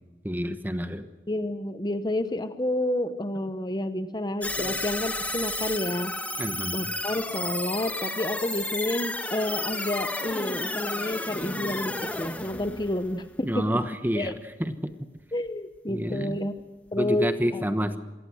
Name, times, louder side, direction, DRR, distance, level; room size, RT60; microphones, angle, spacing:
voice 1, 0.2-1.1 4.6-4.8 5.8-5.9 6.4-6.9 12.5-12.8 13.4-14.3 14.6-14.7 15.9-16.4 16.9-18.0, equal, 10° right, 9 dB, 1.2 m, -29 dB
voice 2, 1.3-6.2 6.7-13.7 14.1-14.3 15.3-16.5 16.9-17.6, left 1 dB, 25° left, 10 dB, 1.0 m, -30 dB
sound 1, 4.4-13.7, left 2 dB, 10° left, 1.3 m, -32 dB
26.5 x 18.5 x 6.4 m, 1.2 s
head